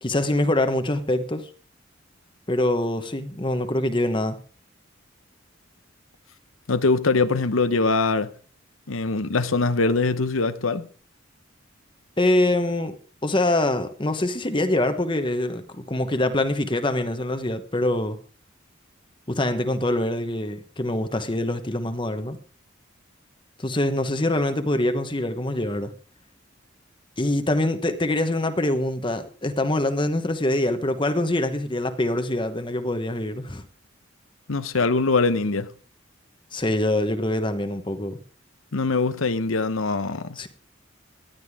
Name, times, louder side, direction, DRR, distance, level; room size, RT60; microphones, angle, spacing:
voice 1, 0.0-1.5 2.5-4.4 12.2-13.0 13.2-18.2 19.3-22.4 23.6-25.9 27.2-33.6 36.5-38.2 40.4-40.5, left 1 dB, 25° left, 1.1 m, -24 dB
voice 2, 6.7-8.3 8.9-10.9 34.5-35.7 38.7-40.4, left 3 dB, 90° left, 1.0 m, -22 dB
18.0 x 11.5 x 3.6 m
head